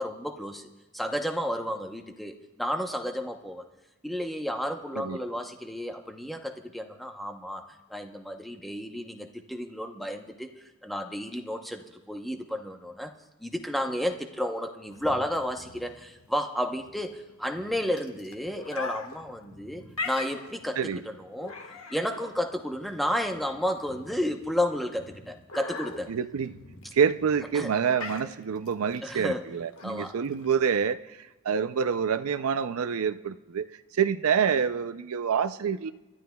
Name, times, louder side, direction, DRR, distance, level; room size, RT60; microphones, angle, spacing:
voice 1, 0.0-3.6 4.0-7.6 7.9-13.1 13.4-21.5 21.9-26.1 27.5-27.7 29.0-29.5 29.8-30.2, equal, ahead, 4 dB, 0.8 m, -32 dB
sound 1, 14.9-30.8, left 3 dB, 70° left, 1.5 m, -42 dB
voice 2, 26.1-26.5 26.9-31.0 31.4-33.7 33.9-35.9, right 7 dB, 80° right, 11 dB, 0.5 m, -27 dB
29.5 x 12.5 x 2.3 m, 1.1 s
head